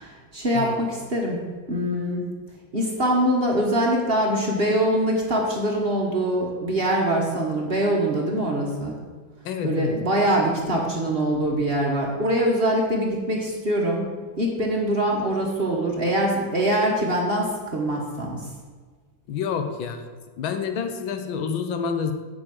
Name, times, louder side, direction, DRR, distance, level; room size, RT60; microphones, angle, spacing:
voice 1, 0.0-1.4 1.7-2.2 2.7-9.0 9.6-14.1 14.4-18.5, right 1 dB, 35° right, -1 dB, 1.0 m, -23 dB
voice 2, 9.4-10.0 19.3-20.0 20.4-22.1, left 6 dB, 90° left, 7 dB, 1.6 m, -28 dB
8.0 x 5.2 x 7.5 m, 1.5 s
omnidirectional pair, 2.1 m